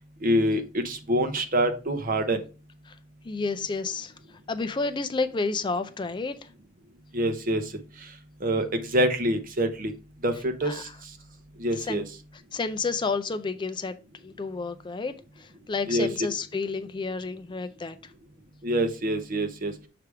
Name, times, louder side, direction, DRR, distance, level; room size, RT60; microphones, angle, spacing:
voice 1, 0.2-2.4 7.1-7.6 8.4-9.9 10.2-10.9 11.6-12.0 15.9-16.1 18.6-19.7, right 1 dB, 45° right, 8 dB, 0.8 m, -25 dB
voice 2, 3.2-6.5 10.6-10.9 11.7-12.1 12.5-14.0 14.2-18.1, left 4 dB, 25° left, 10 dB, 0.4 m, -31 dB
6.7 x 3.4 x 4.7 m, 0.33 s
head